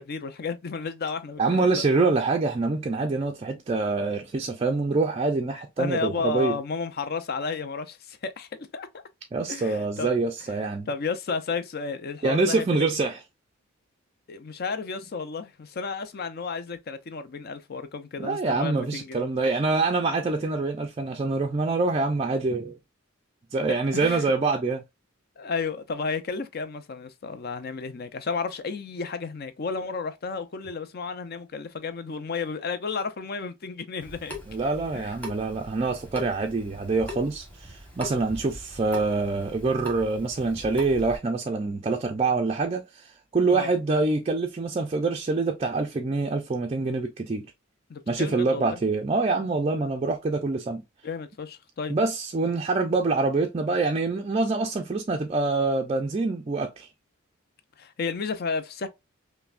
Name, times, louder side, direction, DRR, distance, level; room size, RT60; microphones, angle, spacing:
voice 1, 0.0-1.8 5.8-9.0 9.5-10.1 10.5-12.7 14.3-19.3 23.7-24.2 25.4-34.4 34.9-35.1 43.5-43.7 47.9-48.8 51.0-52.0 57.8-58.9, left 4 dB, 45° left, 0.5 m, -32 dB
voice 2, 1.4-6.6 9.3-10.9 12.2-13.2 18.2-22.8 23.5-24.8 34.5-47.5 48.1-50.8 51.9-56.9, right 3 dB, 30° right, 0.4 m, -25 dB
Water tap faucet / Sink (filling or washing) / Drip, 34.0-41.2, equal, 5° left, 1.1 m, -41 dB
5.6 x 2.1 x 2.4 m
head